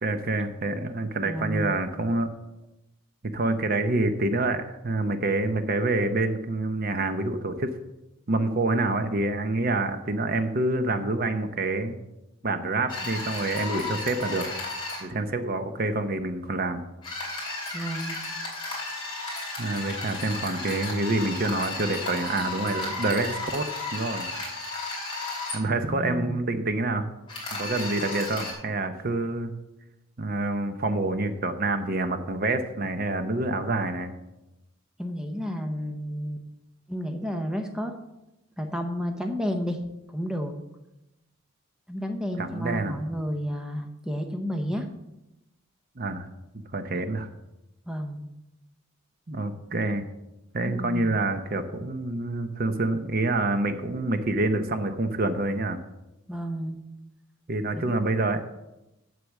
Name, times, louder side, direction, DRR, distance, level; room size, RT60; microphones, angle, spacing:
voice 1, 0.0-2.3 3.3-7.7 8.3-12.0 12.4-14.5 15.0-16.8 19.6-24.3 25.5-27.1 27.5-29.5 30.2-34.1 42.4-43.0 46.0-46.3 46.7-47.3 49.3-50.0 50.5-55.8 57.5-58.4, right 2 dB, 40° right, 8 dB, 0.7 m, -27 dB
voice 2, 1.2-1.7 17.7-18.2 25.9-26.4 35.0-36.4 36.9-37.9 38.6-39.8 40.1-40.5 41.9-44.9 47.9-48.2 50.7-51.1 56.3-56.8 57.7-58.0, equal, 5° right, 4 dB, 0.8 m, -31 dB
sound 1, 12.9-15.0 17.0-25.6 27.3-28.5, left 2 dB, 20° left, 4.0 m, -34 dB
8.0 x 7.7 x 7.1 m, 0.94 s
head